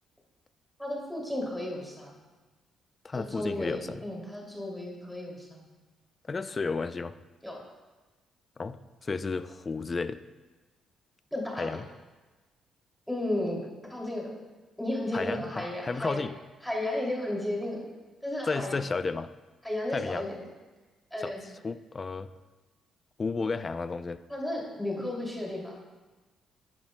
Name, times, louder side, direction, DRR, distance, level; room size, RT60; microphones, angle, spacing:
voice 1, 0.8-2.2 3.1-5.7 7.4-7.6 11.3-11.7 13.1-13.6 13.9-14.3 14.8-16.2 16.6-17.8 18.2-18.8 19.6-20.4 21.1-21.4 24.3-25.7, left 1 dB, ahead, -3 dB, 2.6 m, -33 dB
voice 2, 3.0-4.1 6.3-7.2 8.6-10.2 11.6-11.9 15.1-16.3 18.4-19.3 19.9-20.3 21.2-21.3 21.6-22.3 23.2-24.2, left 4 dB, 30° left, 12 dB, 0.4 m, -32 dB
13.5 x 10.5 x 2.2 m, 1.2 s
cardioid pair, 90°, 0 cm